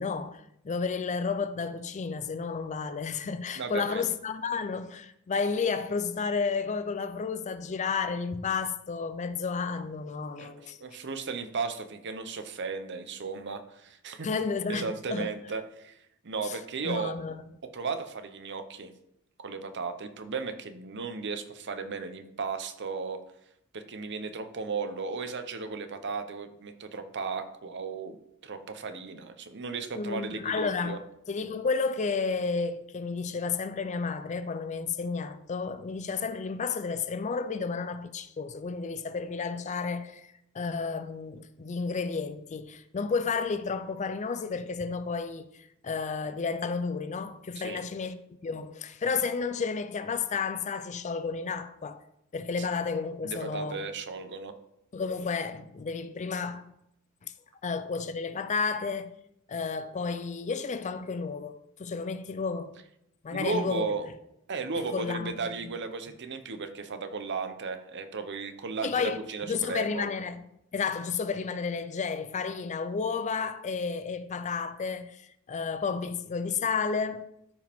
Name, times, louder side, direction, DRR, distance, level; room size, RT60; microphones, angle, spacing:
voice 1, 0.0-10.8 14.2-15.3 16.4-16.5 16.8-17.4 30.0-52.0 52.3-53.8 54.9-56.7 57.2-57.3 57.6-59.1 59.5-62.8 63.2-63.9 64.9-65.5 68.8-69.2 69.5-70.4 70.7-77.3, left 5 dB, 35° left, 0.4 m, -32 dB
voice 2, 3.6-4.0 10.4-14.3 14.7-16.0 16.2-17.1 17.7-18.9 19.4-23.2 23.7-28.2 28.4-31.0 47.6-47.8 52.6-52.7 53.2-54.5 63.3-64.1 64.5-70.0, right 4 dB, 55° right, 0.8 m, -35 dB
13.0 x 5.0 x 3.5 m
head